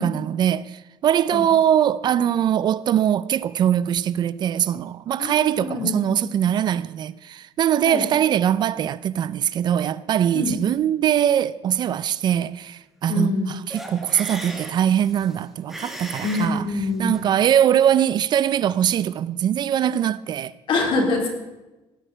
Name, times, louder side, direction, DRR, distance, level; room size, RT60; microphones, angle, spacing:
voice 1, 0.0-16.7 17.0-20.5, right 10 dB, 45° right, 0.4 m, -22 dB
voice 2, 5.2-6.3 7.9-8.0 10.3-10.5 13.1-13.5 16.2-17.1 20.7-21.3, left 3 dB, 55° left, 3.5 m, -25 dB
sound 1, 13.7-17.3, right 1 dB, 5° right, 2.1 m, -37 dB
17.5 x 6.5 x 8.8 m
cardioid pair, 155°, 10 cm